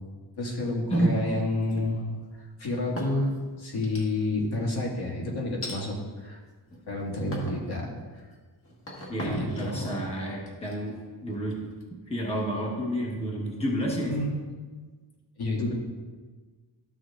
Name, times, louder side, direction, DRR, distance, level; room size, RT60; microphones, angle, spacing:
voice 1, 0.4-2.0 2.3-3.3 3.6-6.4 6.9-7.9 9.2-10.0 14.0-14.3 15.4-15.7, left 2 dB, 60° left, -4 dB, 2.0 m, -29 dB
sound 1, 1.5-2.2 2.7-3.4 3.8-4.5 5.6-5.8 6.5-6.9 7.3-7.7 8.1-11.8, left 1 dB, 30° left, 1.5 m, -41 dB
voice 2, 9.1-11.0 11.2-11.6 12.1-14.1, right 1 dB, 15° left, -3 dB, 1.1 m, -29 dB
13.0 x 6.2 x 2.4 m, 1.4 s
wide cardioid pair, 160°, 43 cm